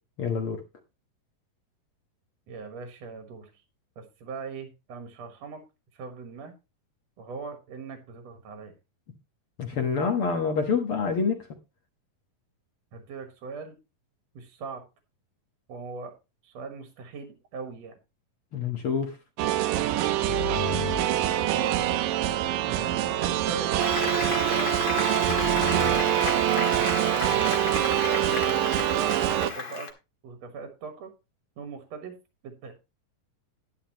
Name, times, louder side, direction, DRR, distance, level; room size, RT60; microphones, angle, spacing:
voice 1, 0.2-0.6 9.6-11.4 18.5-19.2, left 5 dB, 55° left, 4 dB, 1.6 m, -26 dB
voice 2, 2.5-3.5 4.0-5.6 5.9-6.5 7.2-8.7 12.9-13.8 14.3-14.8 15.7-16.1 16.4-18.0 21.5-21.7 22.6-25.7 27.2-27.6 28.0-29.9 30.2-31.1 31.6-32.1 32.4-32.7, right 5 dB, 60° right, 6 dB, 2.3 m, -40 dB
sound 1, 19.4-29.5, right 13 dB, 80° right, 2.4 m, -25 dB
sound 2, 20.3-22.0 25.3-26.2, left 14 dB, 85° left, 2.3 m, -36 dB
Applause, 23.8-29.9, left 4 dB, 35° left, 1.7 m, -33 dB
11.0 x 11.0 x 2.9 m, 0.27 s
omnidirectional pair, 3.9 m